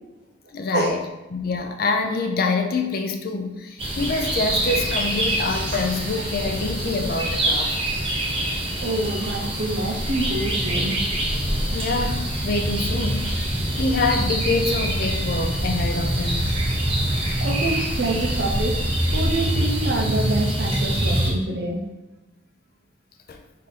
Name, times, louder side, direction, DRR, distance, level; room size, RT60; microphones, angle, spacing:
voice 1, 0.5-1.0 1.3-7.8 11.7-13.4 13.8-16.6 23.3-23.4, left 3 dB, 50° left, 4 dB, 0.4 m, -26 dB
sound 1, 3.8-21.3, right 1 dB, 30° right, 0.8 m, -25 dB
voice 2, 8.8-11.0 17.4-18.8 19.1-21.8, right 2 dB, 55° right, 2 dB, 0.6 m, -26 dB
3.6 x 2.7 x 4.0 m, 1.0 s
head